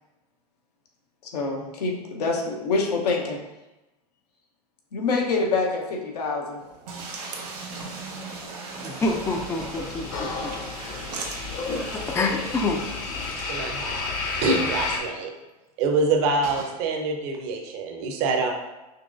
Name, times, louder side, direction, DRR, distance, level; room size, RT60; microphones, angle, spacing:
voice 1, 1.2-3.4 4.9-6.6, left 3 dB, 75° left, 0 dB, 1.0 m, -26 dB
sound 1, 6.6-12.3, right 3 dB, 85° right, 0.8 m, -42 dB
sound 2, 6.9-14.0 14.4-14.5 14.7-14.8 16.4-16.8, right 3 dB, 70° right, 1.4 m, -39 dB
voice 2, 8.8-10.6 11.9-12.8, left 2 dB, 15° left, 3 dB, 0.4 m, -27 dB
sound 3, 9.0-15.0, left 4 dB, 45° left, 0.9 m, -31 dB
voice 3, 13.3-14.1 14.4-15.3 15.8-18.5, right 3 dB, 55° right, 3 dB, 0.9 m, -25 dB
5.6 x 3.0 x 2.6 m, 1.0 s
hypercardioid pair, 95°, 21 cm